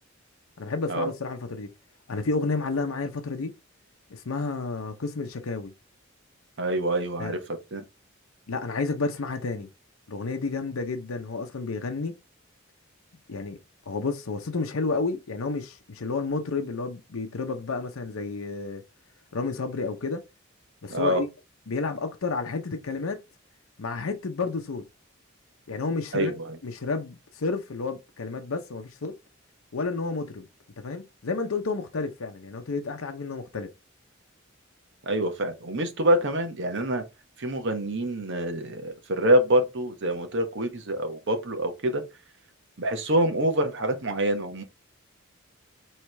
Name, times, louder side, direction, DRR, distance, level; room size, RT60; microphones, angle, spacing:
voice 1, 0.6-1.7 2.1-3.5 4.1-5.7 7.2-7.4 8.5-9.7 10.1-12.1 13.3-13.6 13.9-18.8 19.3-20.2 20.8-21.3 21.7-23.2 23.8-24.8 25.7-26.4 26.6-29.1 29.7-30.5 30.8-33.7, left 3 dB, 80° left, 0.7 m, -31 dB
voice 2, 6.6-7.4 7.7-7.8 20.9-21.2 26.1-26.6 35.0-37.0 37.4-42.0 42.8-44.6, right 1 dB, 60° right, 1.0 m, -26 dB
4.7 x 3.2 x 3.3 m
head